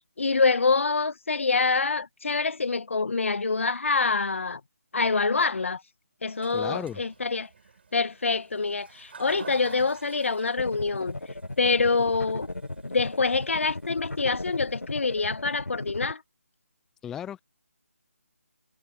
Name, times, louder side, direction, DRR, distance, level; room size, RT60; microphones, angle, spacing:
voice 1, 0.2-4.6 4.9-5.8 6.2-7.5 7.9-11.1 11.6-12.5 12.9-16.2, left 4 dB, 60° left, 1.8 m, -26 dB
Toilet flush, 6.3-15.6, right 5 dB, 45° right, 5.1 m, -49 dB
voice 2, 6.5-7.0 17.0-17.4, left 9 dB, 5° left, 0.5 m, -34 dB
sound 1, 10.6-16.1, left 2 dB, 85° left, 1.8 m, -36 dB
figure-of-eight pair, 155°, 8 cm